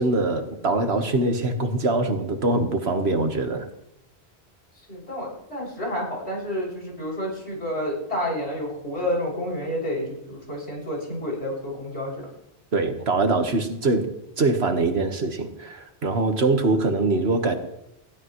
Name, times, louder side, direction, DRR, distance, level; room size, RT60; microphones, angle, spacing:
voice 1, 0.0-3.7 12.7-14.1 14.4-17.6, right 2 dB, 75° right, 6 dB, 1.8 m, -23 dB
voice 2, 4.9-12.3, equal, 85° left, -3 dB, 7.1 m, -30 dB
21.0 x 15.5 x 3.2 m, 0.84 s
omnidirectional pair, 1.1 m